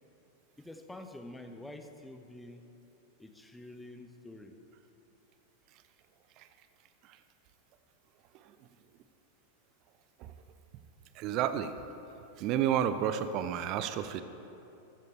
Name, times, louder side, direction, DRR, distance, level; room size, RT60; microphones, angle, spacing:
voice 1, 0.6-2.6 3.2-4.6, left 1 dB, 5° left, 6 dB, 0.9 m, -47 dB
voice 2, 11.2-11.7 12.4-14.2, right 9 dB, 40° right, 12 dB, 0.7 m, -30 dB
14.5 x 13.5 x 3.7 m, 2.9 s
figure-of-eight pair, 90°, 0 cm